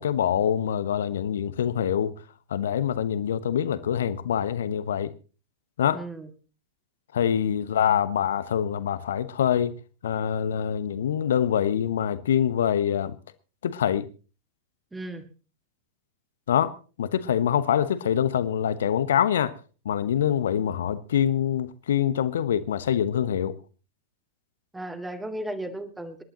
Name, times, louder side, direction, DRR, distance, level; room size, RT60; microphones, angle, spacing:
voice 1, 0.0-2.1 2.5-5.1 5.8-6.0 7.1-9.8 10.0-13.1 13.6-14.1 16.5-16.7 17.0-19.5 19.8-23.5, left 9 dB, 60° left, 1.1 m, -25 dB
voice 2, 5.9-6.3 14.9-15.2 24.7-26.2, right 1 dB, 10° right, 2.2 m, -35 dB
26.5 x 11.5 x 3.0 m
figure-of-eight pair, 90°, 0 cm